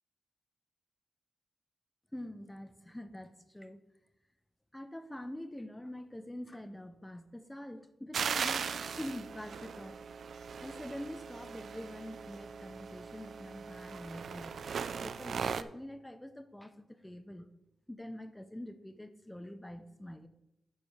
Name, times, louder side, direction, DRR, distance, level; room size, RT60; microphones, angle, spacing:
voice 1, 2.1-3.8 4.7-10.0 10.6-14.6 15.0-17.6 17.9-20.3, left 1 dB, 10° left, 10 dB, 0.7 m, -45 dB
sound 1, 8.1-15.6, right 6 dB, 65° right, 0.4 m, -39 dB
9.5 x 5.0 x 5.6 m, 0.91 s
wide cardioid pair, 125°, 0 cm